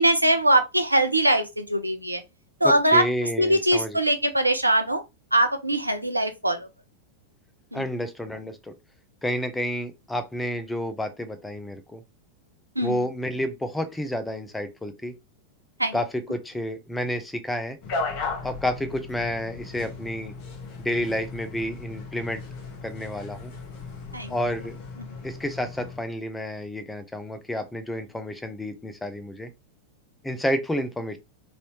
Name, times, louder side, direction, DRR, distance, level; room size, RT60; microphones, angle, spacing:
voice 1, 0.0-2.2 2.6-3.0 3.4-5.0 5.3-6.7 7.7-7.8 12.8-13.0 15.8-15.9 24.1-24.3, right 1 dB, 85° right, 0.5 m, -22 dB
voice 2, 2.6-4.0 7.7-8.8 9.2-12.0 12.8-15.2 15.9-17.8 18.4-20.3 20.8-22.4 22.8-23.5 24.3-24.8 25.2-29.5 30.2-31.2, left 1 dB, 5° left, 0.6 m, -30 dB
sound 1, 17.8-26.0, left 4 dB, 40° left, 1.0 m, -36 dB
3.1 x 2.7 x 3.0 m
figure-of-eight pair, 90°, 0 cm